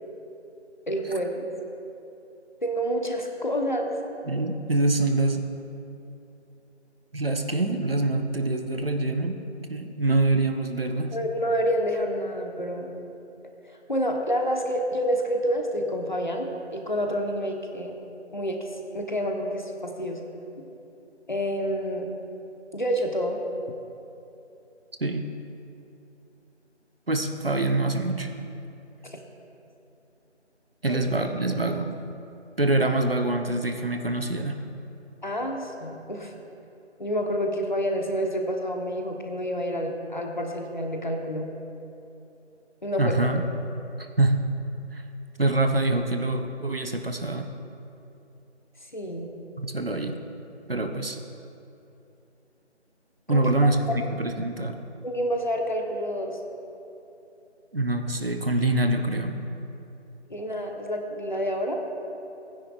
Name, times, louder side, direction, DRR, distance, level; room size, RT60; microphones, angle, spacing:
voice 1, 0.9-1.5 2.6-3.9 11.1-12.9 13.6-17.9 18.3-18.7 18.9-20.2 20.6-20.7 21.3-22.1 22.7-23.4 30.9-31.0 35.2-36.3 37.0-41.5 42.8-43.2 48.9-49.3 53.3-53.4 55.0-56.4 60.3-61.8, equal, 40° left, 2 dB, 1.2 m, -28 dB
voice 2, 4.3-5.5 7.1-9.4 9.7-11.2 25.0-25.3 27.1-28.3 30.8-31.9 32.6-34.6 43.0-43.4 44.0-44.4 44.9-45.0 45.4-47.5 49.6-50.2 50.7-51.2 53.3-54.7 57.7-59.4, right 2 dB, 55° right, 5 dB, 1.0 m, -25 dB
19.0 x 10.0 x 2.5 m, 2.8 s
figure-of-eight pair, 175°, 35 cm